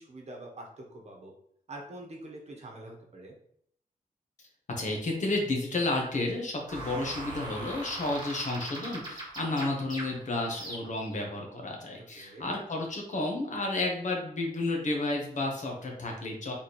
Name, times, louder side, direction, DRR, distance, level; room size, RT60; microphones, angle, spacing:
voice 1, 0.0-1.3 1.7-3.4 12.1-12.5, right 1 dB, 45° right, 0 dB, 1.1 m, -45 dB
voice 2, 4.8-16.5, left 2 dB, 55° left, 1 dB, 1.1 m, -31 dB
sound 1, 6.7-11.2, right 1 dB, 30° right, 1.6 m, -40 dB
3.7 x 3.2 x 4.2 m, 0.68 s
wide cardioid pair, 140°, 15 cm